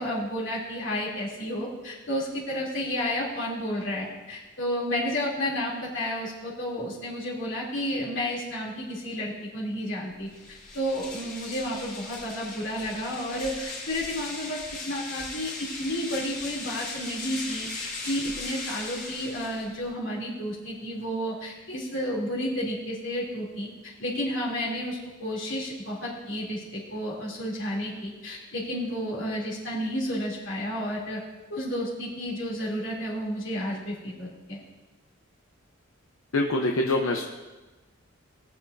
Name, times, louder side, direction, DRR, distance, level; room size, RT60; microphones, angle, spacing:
voice 1, 0.0-31.2 31.5-34.6, equal, 65° left, -4 dB, 3.0 m, -31 dB
sound 1, 10.3-19.9, left 3 dB, 40° left, 3.9 m, -38 dB
voice 2, 36.3-37.2, left 2 dB, 90° left, 2 dB, 0.8 m, -24 dB
20.0 x 7.5 x 2.7 m, 1.2 s
head